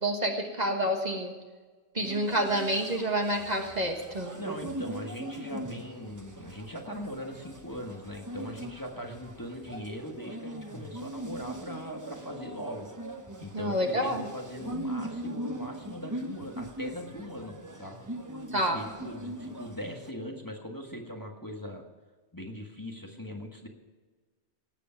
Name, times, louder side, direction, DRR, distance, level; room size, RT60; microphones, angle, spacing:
voice 1, 0.0-1.3 1.9-4.3 13.5-14.2 18.5-18.8, right 1 dB, 35° right, 3 dB, 1.6 m, -28 dB
sound 1, 2.0-20.1, right 1 dB, 15° right, 0.9 m, -41 dB
voice 2, 4.3-12.9 13.4-18.0 18.7-21.8 22.3-23.7, equal, 15° left, 1 dB, 1.5 m, -40 dB
18.5 x 8.3 x 5.8 m, 1.4 s
omnidirectional pair, 1.2 m